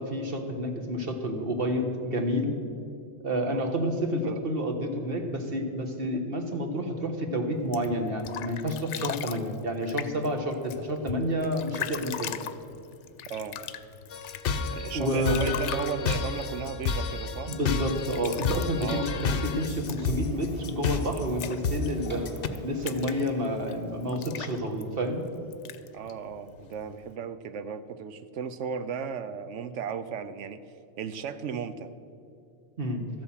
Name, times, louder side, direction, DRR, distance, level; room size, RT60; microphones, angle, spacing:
voice 1, 0.0-2.6 3.2-12.4 14.9-15.5 17.5-22.2 22.6-25.2 32.8-33.0, equal, 55° right, 4 dB, 1.6 m, -29 dB
sound 1, 7.6-27.2, left 10 dB, 80° left, 0.9 m, -42 dB
sound 2, 14.1-22.5, left 5 dB, 55° left, 0.9 m, -30 dB
voice 2, 14.7-17.6 18.8-19.4 25.9-30.6 31.0-31.9, right 7 dB, 90° right, 12 dB, 1.0 m, -35 dB
Printer, 19.6-24.2, left 1 dB, 10° right, 2.2 m, -46 dB
13.5 x 8.4 x 7.4 m, 2.6 s
omnidirectional pair, 1.2 m